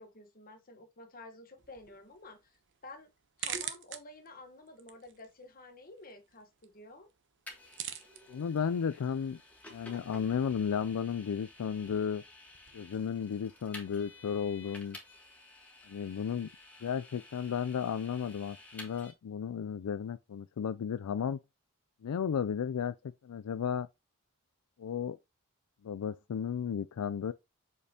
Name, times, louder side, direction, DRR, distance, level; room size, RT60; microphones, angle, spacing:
voice 1, 0.0-2.6 2.8-3.1 3.4-7.1, left 2 dB, 40° left, 1.2 m, -51 dB
sound 1, 1.6-12.8, right 9 dB, 55° right, 0.7 m, -48 dB
Vehicle, 7.5-19.1, left 2 dB, 5° left, 1.5 m, -53 dB
voice 2, 8.3-9.4 9.7-12.2 12.7-15.0 15.9-16.5 16.8-21.4 22.0-22.9 23.2-23.9 24.8-25.2 25.8-27.3, left 7 dB, 85° left, 0.4 m, -34 dB
6.5 x 5.2 x 2.9 m
head